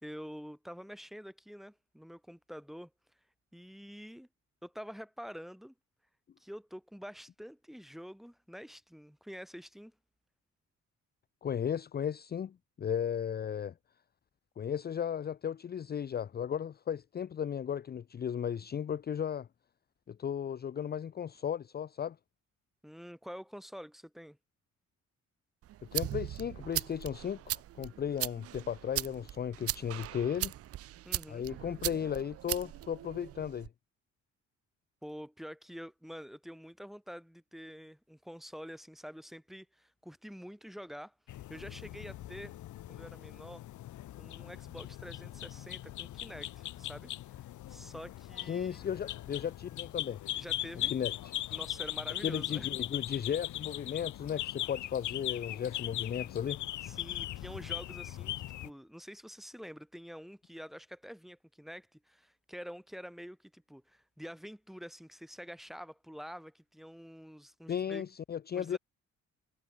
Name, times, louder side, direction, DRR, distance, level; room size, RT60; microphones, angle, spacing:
voice 1, 0.0-2.9 3.5-4.3 4.6-5.7 6.4-9.9 22.8-24.4 31.1-31.5 35.0-42.6 42.9-43.6 44.2-47.1 47.7-48.8 50.3-50.9 51.5-52.8 56.8-68.0 68.5-68.8, equal, ahead, 2.0 m, -47 dB
voice 2, 11.4-13.7 14.6-19.5 20.1-22.2 25.9-30.5 31.3-33.7 48.5-50.2 50.9-51.3 52.2-56.6 67.7-68.8, left 8 dB, 35° left, 0.5 m, -35 dB
sound 1, 25.6-33.7, right 13 dB, 50° right, 0.5 m, -39 dB
sound 2, 41.3-58.7, left 14 dB, 75° left, 1.3 m, -40 dB
cardioid pair, 90°, 30 cm